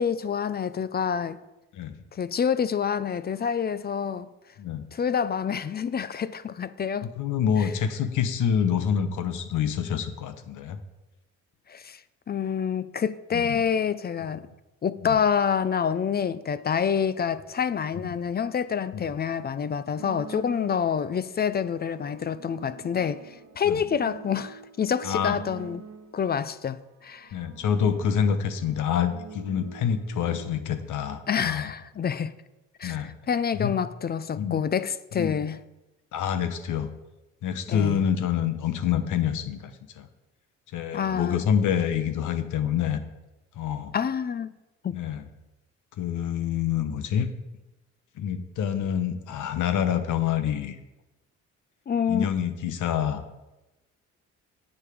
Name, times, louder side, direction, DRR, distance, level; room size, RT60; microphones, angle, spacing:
voice 1, 0.0-1.4 2.1-4.3 4.9-7.1 7.6-7.7 11.7-12.0 12.3-14.5 14.8-25.9 26.1-27.3 31.3-32.3 32.8-35.6 37.7-38.0 40.9-41.4 43.9-44.5 44.8-45.0 51.9-52.3, left 7 dB, 35° left, 0.4 m, -27 dB
voice 2, 7.0-10.8 13.3-13.6 15.0-15.2 18.0-18.1 18.9-19.1 23.7-23.8 25.0-25.4 27.3-31.7 32.8-33.1 33.5-33.7 34.4-34.6 35.2-35.4 36.1-36.9 37.4-40.1 40.7-43.0 43.6-43.9 44.9-45.2 46.0-47.3 48.2-50.8 52.1-53.2, left 8 dB, 80° left, 1.0 m, -27 dB
sound 1, 20.0-21.1 21.8-26.3 27.1-30.5, right 6 dB, 70° right, 1.0 m, -46 dB
9.8 x 7.3 x 5.0 m
cardioid pair, 90°, 30 cm